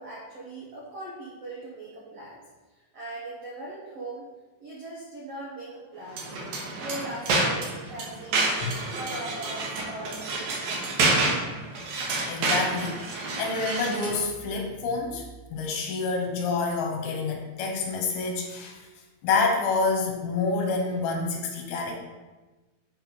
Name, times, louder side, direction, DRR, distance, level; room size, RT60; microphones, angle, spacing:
voice 1, 0.0-2.4 2.9-4.3 4.6-6.2 6.8-10.7, right 1 dB, 80° right, -6 dB, 1.4 m, -40 dB
sound 1, 6.1-14.2, right 2 dB, 65° right, 2.0 m, -28 dB
voice 2, 12.3-15.3 15.5-18.9 19.2-22.0, left 4 dB, 75° left, 1 dB, 2.6 m, -28 dB
7.8 x 3.3 x 5.3 m, 1.2 s
omnidirectional pair, 4.7 m